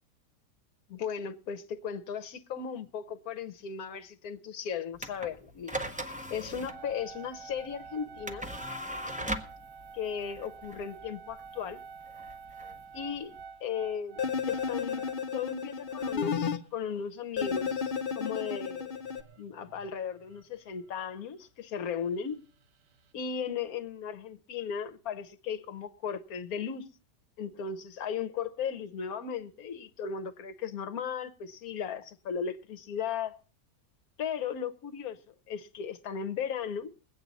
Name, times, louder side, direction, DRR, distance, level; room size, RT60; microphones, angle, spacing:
voice 1, 0.9-5.7 6.1-8.5 9.9-11.8 12.9-13.3 13.6-19.0 19.4-22.4 23.1-26.9 27.4-33.4 34.2-35.2 35.5-36.9, left 7 dB, 65° left, 1.3 m, -36 dB
sound 1, 4.9-13.4, equal, 10° right, 0.4 m, -40 dB
sound 2, 6.7-16.0 16.7-16.8 17.0-17.1 18.6-21.4 21.8-23.1, right 5 dB, 85° right, 1.5 m, -49 dB
sound 3, 14.2-16.6 17.4-19.2, left 6 dB, 45° left, 0.7 m, -32 dB
21.0 x 8.6 x 4.0 m
omnidirectional pair, 1.8 m